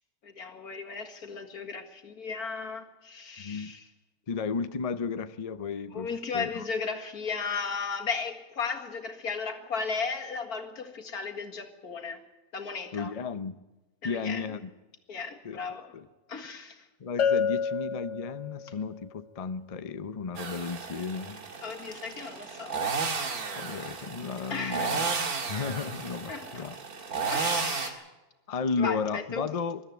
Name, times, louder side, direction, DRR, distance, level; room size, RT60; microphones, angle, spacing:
voice 1, 0.2-3.8 5.9-12.2 12.5-13.1 14.0-14.5 15.1-15.9 16.3-16.9 21.6-22.9 24.5-25.0 26.3-26.7 27.3-28.0 28.8-29.5, left 5 dB, 80° left, 2.4 m, -35 dB
voice 2, 3.4-3.8 4.3-6.1 6.3-6.7 12.9-13.6 14.0-14.7 15.4-16.1 17.0-21.4 23.5-25.0 25.5-26.8 28.5-29.8, left 5 dB, 35° left, 0.6 m, -33 dB
Bell, 17.2-18.8, left 6 dB, 60° left, 1.1 m, -28 dB
sound 1, 20.4-27.9, right 5 dB, 75° right, 2.3 m, -33 dB
21.5 x 13.0 x 9.5 m
omnidirectional pair, 1.6 m